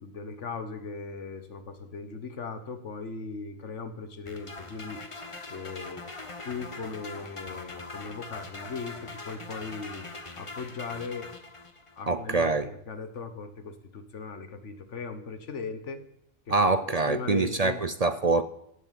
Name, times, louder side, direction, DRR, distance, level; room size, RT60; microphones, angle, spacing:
voice 1, 0.0-5.0 5.5-6.1 6.4-10.1 10.4-11.3 12.0-16.0 16.5-16.6 17.1-17.8, left 4 dB, 85° left, 1.7 m, -38 dB
sound 1, 4.3-12.0, left 3 dB, 25° left, 1.2 m, -42 dB
voice 2, 12.1-12.7 16.5-18.4, right 3 dB, 40° right, 0.6 m, -25 dB
16.5 x 7.9 x 8.3 m
omnidirectional pair, 1.2 m